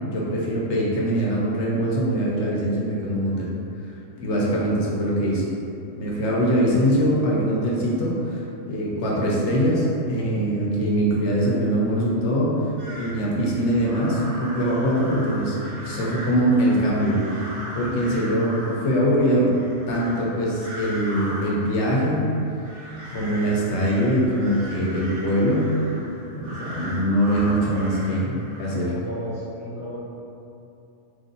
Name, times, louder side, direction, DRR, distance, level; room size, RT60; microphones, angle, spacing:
voice 1, 0.0-3.5 4.2-5.5 5.9-12.5 13.0-19.5 19.9-22.3 23.1-25.7 26.0-28.9, equal, 65° left, -4 dB, 1.0 m, -23 dB
sound 1, 12.8-29.0, equal, 65° right, 1.1 m, -38 dB
voice 2, 28.7-30.0, equal, 10° left, -9 dB, 0.5 m, -34 dB
3.2 x 2.6 x 3.8 m, 2.7 s
omnidirectional pair, 1.4 m